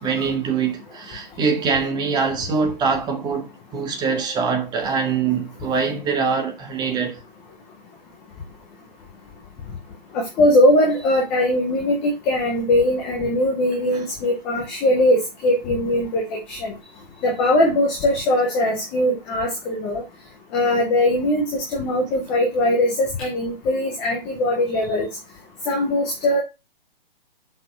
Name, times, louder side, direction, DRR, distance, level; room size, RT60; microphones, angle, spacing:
voice 1, 0.0-7.2 13.9-14.1, right 5 dB, 15° right, 1.8 m, -23 dB
voice 2, 10.1-16.2 16.5-16.7 17.2-20.0 20.5-25.1 25.7-26.4, left 1 dB, 5° left, 0.3 m, -20 dB
6.8 x 6.0 x 4.6 m
hypercardioid pair, 145°, 29 cm